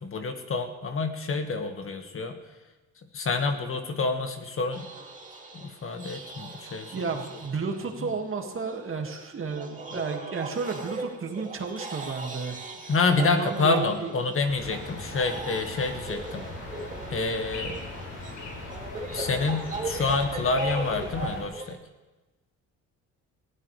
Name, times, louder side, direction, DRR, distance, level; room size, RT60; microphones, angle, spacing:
voice 1, 0.0-2.4 3.1-4.9 5.5-7.0 8.0-8.1 12.9-16.5 17.1-17.7 19.1-21.8, left 3 dB, 45° left, 5 dB, 1.7 m, -28 dB
sound 1, 4.7-21.7, right 2 dB, 25° right, 2.5 m, -39 dB
voice 2, 6.9-12.6 13.2-14.1, right 4 dB, 45° right, 3 dB, 2.1 m, -32 dB
sound 2, 14.5-21.4, left 2 dB, 85° left, 5.5 m, -39 dB
20.0 x 15.5 x 3.3 m, 1.2 s
cardioid pair, 90°, 30 cm